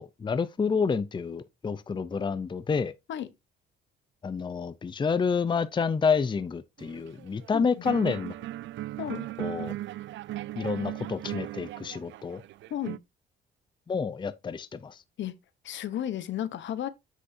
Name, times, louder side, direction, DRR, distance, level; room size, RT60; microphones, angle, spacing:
voice 1, 0.0-2.9 4.2-8.3 9.4-9.7 10.6-12.4 13.9-15.0, left 5 dB, 25° left, 0.5 m, -29 dB
sound 1, 6.8-7.5 7.8-13.0, right 15 dB, 70° right, 0.4 m, -37 dB
voice 2, 7.5-7.8 9.0-9.3 12.7-13.0 15.2-15.3 15.6-16.9, left 10 dB, 70° left, 0.9 m, -33 dB
7.8 x 6.2 x 2.7 m
cardioid pair, 90°, 20 cm